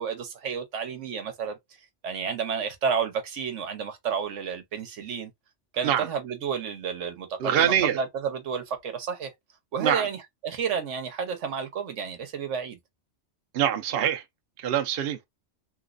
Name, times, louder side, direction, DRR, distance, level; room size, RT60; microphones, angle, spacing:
voice 1, 0.0-1.6 2.0-5.3 5.7-9.3 9.7-12.8, right 6 dB, 90° right, 1.2 m, -31 dB
voice 2, 7.4-8.0 9.8-10.0 13.5-14.2 14.6-15.3, right 10 dB, 60° right, 0.8 m, -24 dB
3.1 x 3.1 x 2.4 m
omnidirectional pair, 1.2 m